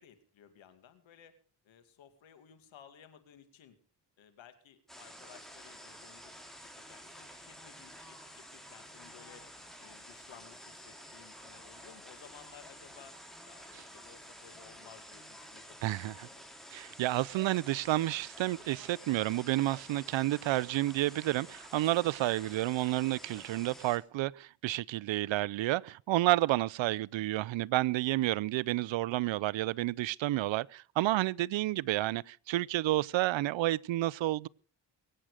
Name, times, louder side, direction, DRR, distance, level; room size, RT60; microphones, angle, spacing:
voice 1, 0.0-1.3 1.6-3.8 4.2-6.3 6.9-9.4 9.8-13.2 13.4-16.5, left 8 dB, 90° left, 2.4 m, -57 dB
sound 1, 4.9-24.0, equal, ahead, 3.8 m, -51 dB
voice 2, 15.8-16.3 16.7-34.5, right 16 dB, 75° right, 0.6 m, -30 dB
23.0 x 9.0 x 4.9 m
cardioid pair, 85°, 45 cm